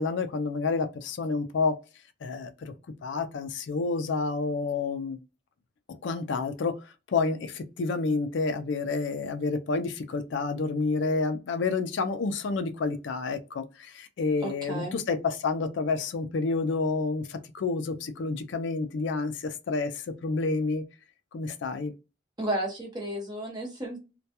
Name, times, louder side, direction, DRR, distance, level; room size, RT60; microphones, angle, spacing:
voice 1, 0.0-1.7 2.2-2.7 3.0-5.2 5.9-6.8 7.1-20.8 21.3-21.9, left 4 dB, 70° left, 0.4 m, -29 dB
voice 2, 14.4-15.0 22.4-24.0, right 1 dB, 20° right, 0.8 m, -33 dB
2.2 x 2.2 x 2.8 m
head